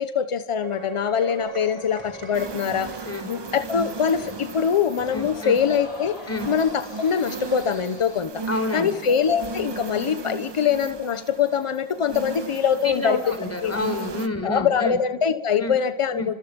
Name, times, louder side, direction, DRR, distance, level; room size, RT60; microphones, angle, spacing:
voice 1, 0.0-2.9 3.3-6.2 6.5-8.3 8.7-13.2 13.6-13.7 14.4-16.3, left 7 dB, 85° left, 10 dB, 1.3 m, -23 dB
sound 1, 0.6-14.9, right 4 dB, 85° right, 4.6 m, -44 dB
sound 2, 1.4-8.2, left 3 dB, 60° left, 7.0 m, -43 dB
sound 3, 2.3-14.3, right 4 dB, 55° right, 1.7 m, -37 dB
voice 2, 5.1-5.6 6.3-6.5 8.5-9.0 12.8-15.0 15.6-15.7 16.1-16.3, left 2 dB, 30° left, 6 dB, 4.7 m, -29 dB
29.0 x 26.0 x 5.4 m, 1.1 s
wide cardioid pair, 80°, 50 cm